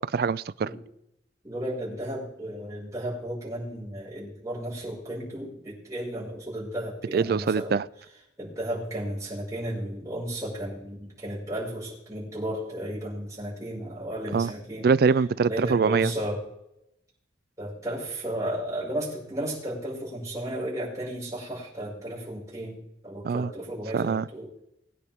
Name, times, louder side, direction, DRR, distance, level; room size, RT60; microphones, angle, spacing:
voice 1, 0.1-0.7 7.1-7.8 14.3-14.5 14.8-16.1 23.2-23.5 23.9-24.3, right 5 dB, 55° right, 19 dB, 0.4 m, -23 dB
voice 2, 1.4-7.8 8.4-14.9 15.4-16.4 17.6-24.5, right 1 dB, 20° right, -7 dB, 5.6 m, -34 dB
21.0 x 10.0 x 3.6 m, 0.82 s
head